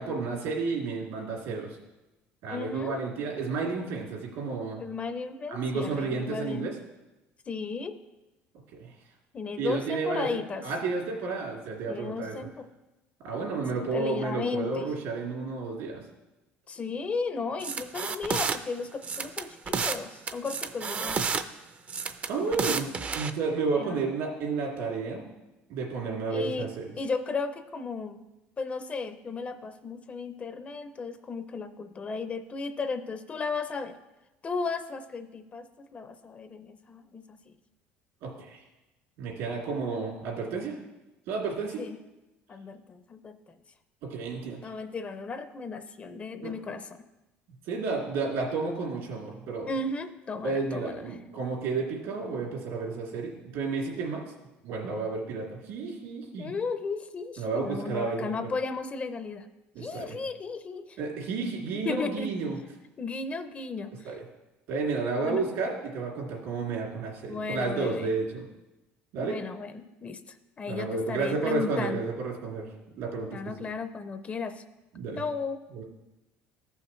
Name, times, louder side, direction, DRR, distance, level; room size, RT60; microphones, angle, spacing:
voice 1, 0.0-1.8 2.4-4.8 5.5-6.7 8.8-8.9 9.6-10.3 10.6-12.3 13.2-16.0 22.3-25.3 25.7-26.9 38.2-38.6 39.2-40.7 41.3-41.8 44.0-44.7 46.4-46.5 47.6-49.7 50.4-54.2 54.6-56.5 57.4-58.3 59.7-60.2 61.0-62.6 64.0-64.2 64.7-68.4 69.1-69.4 70.7-73.4 74.9-75.2 75.7-75.8, right 4 dB, 80° right, -2 dB, 2.7 m, -31 dB
voice 2, 2.5-3.0 4.7-6.7 7.5-8.0 9.3-10.7 11.9-12.7 13.9-14.9 16.7-21.2 22.4-22.8 23.7-24.0 26.3-26.7 27.0-28.2 28.6-34.0 34.4-37.5 41.8-42.0 42.5-43.6 44.6-47.0 49.7-51.1 56.4-59.5 59.8-61.0 61.7-62.3 63.0-64.1 65.2-65.5 67.3-68.1 69.2-72.0 73.3-74.6 75.2-75.6, left 4 dB, 30° left, 9 dB, 0.5 m, -35 dB
sound 1, 17.6-18.6 19.0-20.0 20.3-21.4 21.9-23.3, right 5 dB, 30° right, 0.4 m, -30 dB
14.5 x 5.7 x 3.1 m, 1.0 s
cardioid pair, 130°, 5 cm